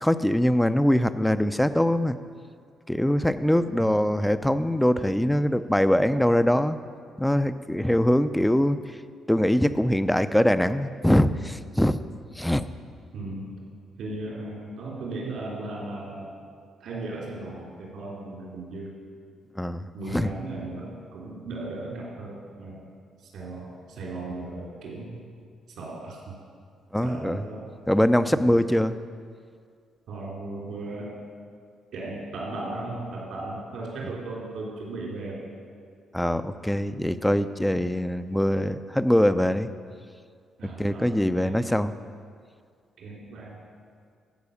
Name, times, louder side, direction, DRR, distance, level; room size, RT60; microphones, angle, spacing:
voice 1, 0.0-2.2 2.9-6.8 7.2-8.8 9.3-12.0 12.4-12.6 19.6-20.3 26.9-27.4 27.9-29.0 36.1-39.7 40.8-41.9, equal, 5° left, 11 dB, 0.5 m, -23 dB
voice 2, 13.1-13.5 14.0-16.3 16.8-18.9 19.9-22.8 23.2-25.2 25.7-26.4 27.0-27.7 28.3-28.6 30.1-31.2 31.9-35.4 40.6-41.6 43.0-43.6, right 2 dB, 75° right, -4 dB, 3.4 m, -36 dB
13.5 x 4.8 x 8.4 m, 2.1 s
cardioid pair, 90°, 0 cm